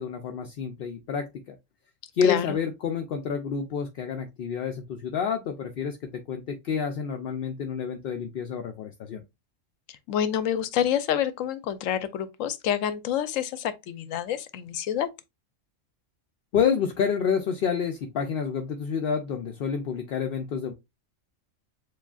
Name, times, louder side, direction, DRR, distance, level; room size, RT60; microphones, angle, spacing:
voice 1, 0.0-1.5 2.1-9.2 16.5-20.7, left 6 dB, 60° left, 0.6 m, -29 dB
voice 2, 2.2-2.6 9.9-15.1, left 10 dB, 80° left, 1.0 m, -28 dB
7.1 x 2.4 x 2.3 m
omnidirectional pair, 1.3 m